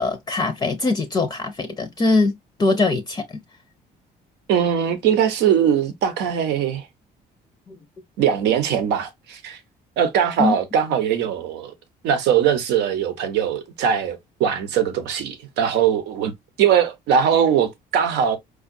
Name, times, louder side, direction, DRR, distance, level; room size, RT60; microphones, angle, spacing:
voice 1, 0.0-2.3 2.6-3.2 7.7-7.8 10.4-10.5, left 3 dB, 25° left, 0.5 m, -21 dB
voice 2, 4.5-6.9 8.2-9.6 10.0-11.7 12.0-16.3 16.6-18.4, right 8 dB, 85° right, 0.8 m, -21 dB
4.8 x 2.3 x 2.5 m
cardioid pair, 110°, 17 cm